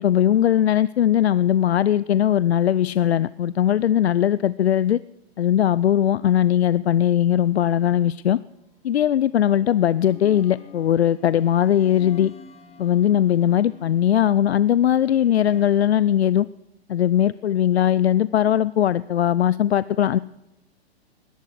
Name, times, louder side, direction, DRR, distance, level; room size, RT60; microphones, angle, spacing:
voice 1, 0.0-5.0 5.4-8.4 8.8-12.3 12.8-16.5 16.9-20.2, left 10 dB, 75° left, 0.5 m, -19 dB
sound 1, 7.3-8.3 9.1-15.7, left 7 dB, 20° left, 2.0 m, -47 dB
20.5 x 11.0 x 4.9 m
figure-of-eight pair, 115°, 32 cm